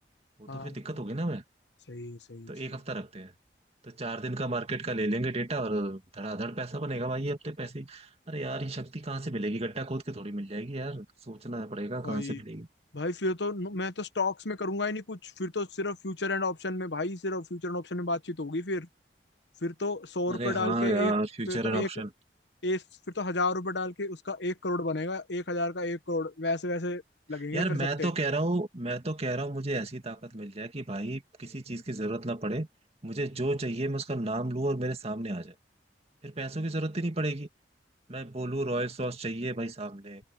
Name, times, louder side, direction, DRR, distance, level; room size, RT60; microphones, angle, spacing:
voice 1, 0.4-1.4 2.5-3.3 3.8-12.7 20.3-22.1 27.5-32.7 33.0-35.5 36.2-37.5 38.1-40.2, right 2 dB, 35° right, 2.2 m, -32 dB
voice 2, 1.9-2.8 12.0-12.4 12.9-18.9 19.6-21.1 21.5-21.9 22.6-22.8 23.1-27.0 27.3-28.1, left 2 dB, 80° left, 1.2 m, -32 dB
head